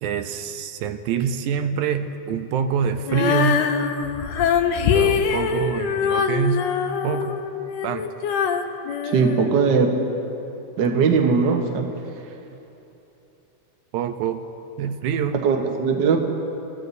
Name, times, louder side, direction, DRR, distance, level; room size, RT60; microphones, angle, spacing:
voice 1, 0.0-3.6 4.9-6.6 7.0-7.4 7.8-8.1 13.9-14.4 14.8-15.4, right 7 dB, 85° right, 7 dB, 2.2 m, -25 dB
Female singing, 3.1-10.1, left 7 dB, 75° left, 1.8 m, -23 dB
voice 2, 9.1-9.9 10.8-11.9 15.4-16.2, right 5 dB, 55° right, 2 dB, 1.2 m, -19 dB
29.5 x 14.0 x 2.7 m, 2.9 s
omnidirectional pair, 3.4 m